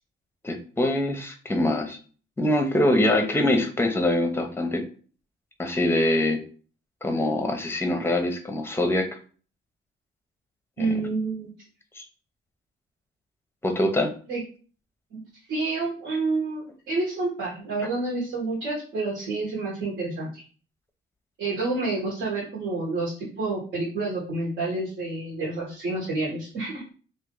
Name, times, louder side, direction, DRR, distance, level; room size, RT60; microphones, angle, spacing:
voice 1, 0.4-2.0 2.4-4.8 5.6-6.4 7.0-9.1 10.8-11.0 12.0-12.1 13.6-14.1, left 1 dB, 10° left, 6 dB, 0.7 m, -24 dB
voice 2, 10.8-11.5 14.3-14.4 15.1-15.2 15.5-20.4 21.4-26.8, right 3 dB, 65° right, -7 dB, 1.4 m, -29 dB
2.9 x 2.7 x 3.7 m, 0.40 s
cardioid pair, 90°, 20 cm